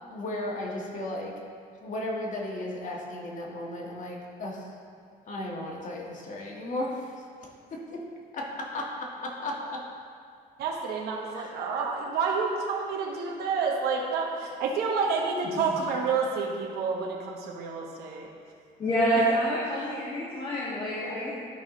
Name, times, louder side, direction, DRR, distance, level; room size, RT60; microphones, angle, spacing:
voice 1, 0.0-1.3 1.8-4.7 5.3-7.2 7.7-8.1 8.3-9.8 11.3-11.5, left 1 dB, 50° left, -2 dB, 1.6 m, -35 dB
voice 2, 10.6-18.3 19.1-19.3, right 5 dB, 70° right, -2 dB, 1.1 m, -29 dB
voice 3, 18.8-21.4, equal, 30° left, -9 dB, 1.8 m, -27 dB
12.5 x 5.3 x 3.1 m, 2.2 s
cardioid pair, 110°, 17 cm